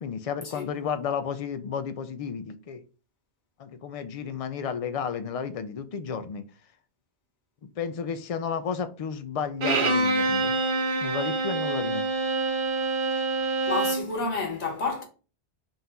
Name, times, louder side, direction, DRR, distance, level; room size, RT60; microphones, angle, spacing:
voice 1, 0.0-2.8 3.6-6.4 7.6-10.6 11.0-12.1, left 6 dB, 55° left, 0.4 m, -32 dB
Bowed string instrument, 9.6-14.1, right 3 dB, 55° right, 0.9 m, -26 dB
voice 2, 13.7-15.0, left 3 dB, 80° left, 1.4 m, -29 dB
3.8 x 2.6 x 4.4 m
omnidirectional pair, 1.1 m